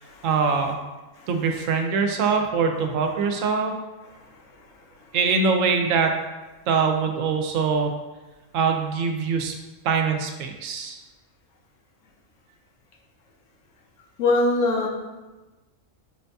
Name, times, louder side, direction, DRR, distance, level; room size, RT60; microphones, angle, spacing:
voice 1, 0.2-0.8 1.3-3.7 5.1-6.1 6.7-7.9 8.5-9.5 9.8-11.0, right 5 dB, 80° right, 4 dB, 0.9 m, -23 dB
voice 2, 14.2-14.9, left 2 dB, 75° left, 0 dB, 1.1 m, -22 dB
5.2 x 2.7 x 3.3 m, 1.2 s
omnidirectional pair, 1.4 m